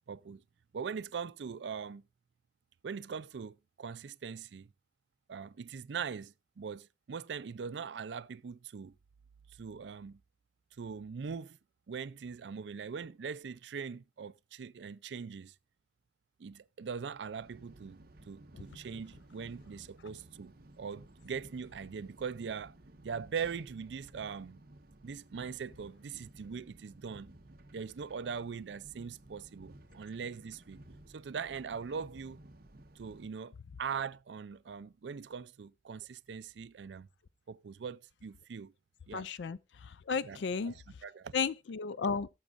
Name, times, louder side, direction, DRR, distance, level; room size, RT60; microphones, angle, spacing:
voice 1, 0.1-0.4 0.7-2.0 2.8-4.7 5.3-8.9 9.6-10.2 10.8-11.6 11.9-15.5 16.4-18.0 18.2-22.7 23.0-24.6 25.0-27.3 27.7-30.8 31.1-32.4 33.0-33.5 33.8-37.1 37.5-38.7 39.1-39.3 40.2-40.4 40.7-41.3, right 6 dB, 75° right, 0.4 m, -41 dB
sound 1, 17.4-33.3, right 1 dB, 55° right, 1.1 m, -56 dB
voice 2, 39.1-40.8 41.3-42.3, left 5 dB, 85° left, 0.4 m, -34 dB
17.5 x 7.2 x 2.5 m
head